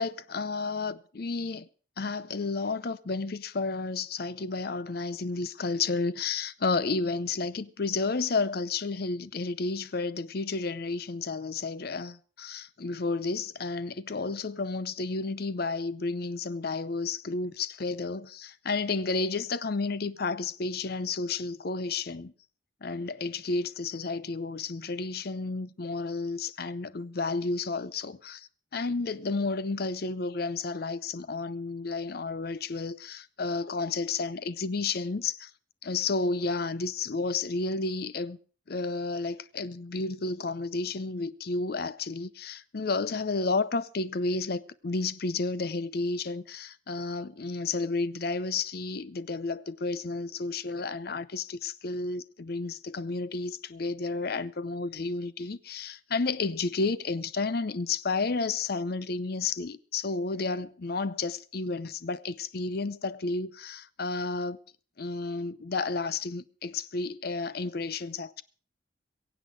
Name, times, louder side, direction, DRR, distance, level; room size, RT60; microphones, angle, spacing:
voice 1, 0.0-1.7 2.0-22.3 22.8-35.5 35.8-38.4 38.7-64.6 65.0-68.4, left 3 dB, 50° left, 0.6 m, -31 dB
22.5 x 8.1 x 5.0 m
head